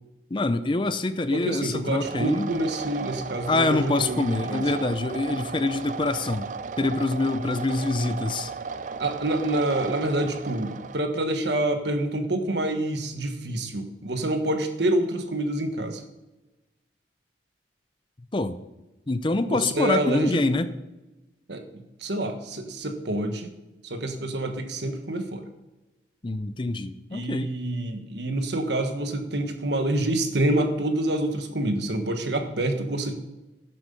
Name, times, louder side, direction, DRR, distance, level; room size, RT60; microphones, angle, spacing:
voice 1, 0.3-2.5 3.5-6.5 6.8-8.5 18.3-18.6 19.1-20.7 26.2-27.5, left 2 dB, 25° left, 12 dB, 0.5 m, -25 dB
voice 2, 1.3-4.7 9.0-16.0 19.5-20.4 21.5-21.6 22.0-23.5 23.9-25.4 27.1-33.1, right 1 dB, 70° right, 6 dB, 1.4 m, -27 dB
sound 1, 2.0-11.0, right 5 dB, 40° right, 0.4 m, -35 dB
11.0 x 7.8 x 5.4 m, 1.1 s
head